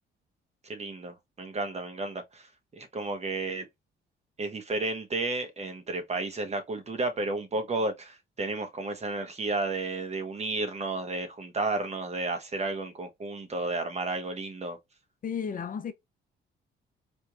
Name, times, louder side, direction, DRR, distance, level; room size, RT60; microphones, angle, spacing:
voice 1, 0.6-2.5 2.7-3.6 4.4-14.8, right 2 dB, 35° right, 1.0 m, -32 dB
voice 2, 15.2-15.9, left 7 dB, 45° left, 0.6 m, -33 dB
4.4 x 2.9 x 2.4 m
cardioid pair, 90°, 20 cm